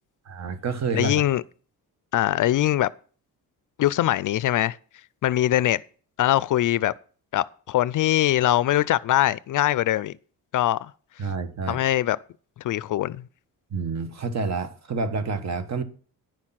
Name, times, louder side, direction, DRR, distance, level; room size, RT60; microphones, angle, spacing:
voice 1, 0.2-1.2 11.2-11.8 13.7-15.8, right 4 dB, 45° right, 1.4 m, -28 dB
voice 2, 0.9-1.4 2.1-2.9 3.8-4.8 5.2-5.8 6.2-6.9 7.3-10.1 10.5-10.9 11.7-12.2 12.6-13.2, left 13 dB, 60° left, 0.5 m, -22 dB
10.5 x 6.4 x 5.8 m
cardioid pair, 130°, 37 cm